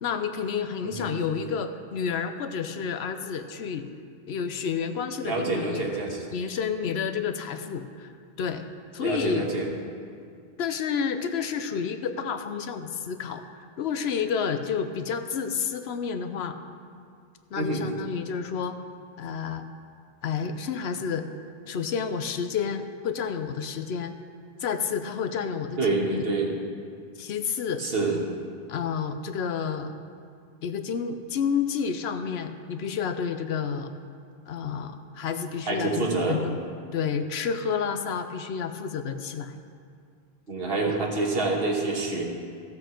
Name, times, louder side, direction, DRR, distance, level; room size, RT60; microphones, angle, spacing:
voice 1, 0.0-3.9 4.3-5.9 6.3-8.1 8.4-8.6 8.9-9.5 10.6-13.4 13.8-16.6 17.5-18.8 19.2-19.6 20.2-21.3 21.7-24.1 24.6-26.2 27.2-27.8 28.7-29.9 30.6-33.9 34.5-36.6 36.9-39.6, left 6 dB, 85° left, 8 dB, 0.9 m, -30 dB
voice 2, 5.2-6.2 9.0-9.7 17.6-17.8 25.8-26.5 27.8-28.2 35.7-36.4 40.5-42.2, right 3 dB, 70° right, 0 dB, 1.6 m, -27 dB
14.5 x 7.7 x 4.4 m, 2.3 s
omnidirectional pair, 1.0 m